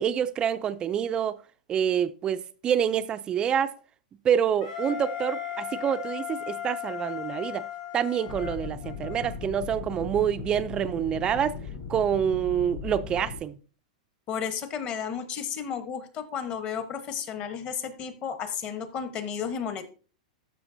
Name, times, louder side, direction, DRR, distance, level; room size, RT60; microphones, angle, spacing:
voice 1, 0.0-1.4 1.7-3.7 4.2-7.6 7.9-11.6 11.9-13.5, right 8 dB, 20° right, 0.4 m, -27 dB
Wind instrument woodwind instrument, 4.6-9.4, left 10 dB, 85° left, 3.5 m, -37 dB
sound 1, 8.3-13.4, left 6 dB, 55° left, 4.9 m, -38 dB
voice 2, 14.3-19.9, left 7 dB, 30° left, 1.0 m, -33 dB
13.0 x 5.7 x 2.6 m
supercardioid pair, 145°, 4 cm